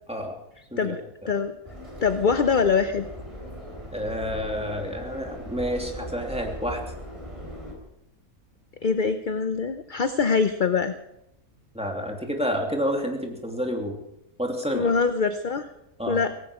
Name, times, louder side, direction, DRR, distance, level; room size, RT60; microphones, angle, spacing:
Subway metro underground, 1.6-7.7, equal, 20° right, 4.5 m, -39 dB
voice 1, 2.0-3.1 8.8-10.9 14.7-15.7 16.1-16.3, left 5 dB, 45° left, 10 dB, 0.7 m, -23 dB
voice 2, 3.9-6.8 11.7-14.0 14.4-14.9 16.0-16.2, equal, 5° right, 1 dB, 2.7 m, -29 dB
17.5 x 16.0 x 4.9 m, 0.82 s
omnidirectional pair, 1.7 m